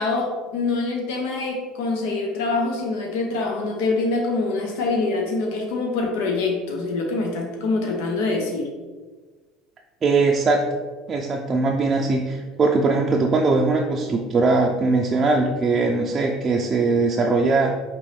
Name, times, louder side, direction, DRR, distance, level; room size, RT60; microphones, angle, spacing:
voice 1, 0.0-8.7, left 3 dB, 80° left, 1 dB, 0.7 m, -25 dB
voice 2, 10.0-10.6 11.1-17.8, right 3 dB, 30° right, 0 dB, 0.4 m, -20 dB
5.2 x 3.0 x 3.2 m, 1.4 s
supercardioid pair, 115°, 0 cm